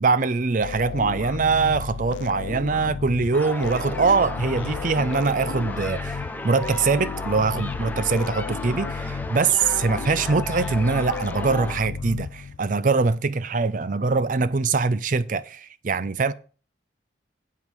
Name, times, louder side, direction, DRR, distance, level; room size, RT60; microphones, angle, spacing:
voice 1, 0.0-16.3, right 4 dB, 45° right, 0.5 m, -23 dB
sound 1, 0.6-12.8, left 6 dB, 85° left, 0.4 m, -34 dB
sound 2, 3.3-11.8, left 1 dB, 10° left, 0.8 m, -35 dB
9.0 x 8.4 x 4.8 m
head